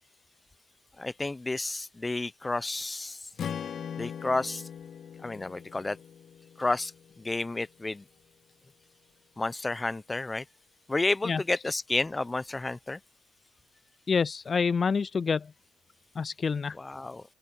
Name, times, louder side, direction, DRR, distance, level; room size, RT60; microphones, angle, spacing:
voice 1, 1.0-3.2 4.0-4.6 5.2-6.0 6.6-6.9 7.2-8.0 9.4-10.4 10.9-13.0 16.8-17.2, left 2 dB, 20° left, 1.0 m, -31 dB
Strum, 3.4-7.6, left 8 dB, 55° left, 0.9 m, -41 dB
voice 2, 14.1-15.5 16.2-16.8, left 5 dB, 40° left, 0.3 m, -27 dB
open air
cardioid pair, 90°, 0 cm